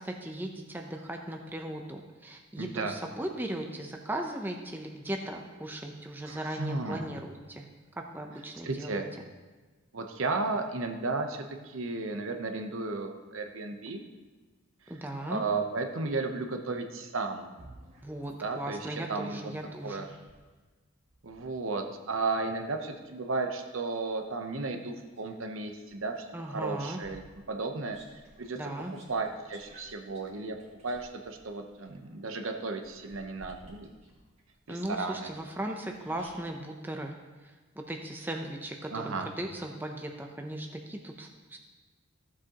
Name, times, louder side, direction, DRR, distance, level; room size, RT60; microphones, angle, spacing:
voice 1, 0.0-7.7 8.0-9.0 14.9-15.4 18.0-20.1 26.3-27.0 28.5-28.9 34.7-37.1 37.8-41.6, right 1 dB, 10° right, 2 dB, 0.6 m, -37 dB
voice 2, 2.6-2.9 6.2-7.2 8.6-9.1 9.9-14.0 15.3-17.5 18.4-19.5 19.8-20.1 21.2-28.0 28.4-28.6 29.1-30.6 30.8-33.9 34.7-35.3 38.9-39.3, right 3 dB, 70° right, 5 dB, 0.9 m, -34 dB
sound 1, 17.5-20.5 21.0-25.4 25.9-36.6, right 1 dB, 30° right, 1.9 m, -56 dB
15.0 x 7.4 x 2.9 m, 1.3 s
head